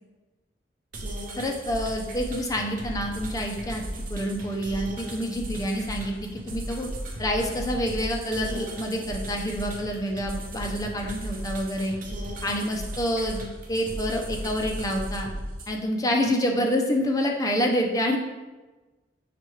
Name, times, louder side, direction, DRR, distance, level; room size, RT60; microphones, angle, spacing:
sound 1, 0.9-15.7, right 1 dB, 50° right, 0.6 m, -36 dB
voice 1, 1.4-3.8 4.1-6.9 7.2-11.9 12.4-15.3 15.7-18.2, equal, 20° left, 1 dB, 0.4 m, -27 dB
5.7 x 2.3 x 3.1 m, 1.2 s
head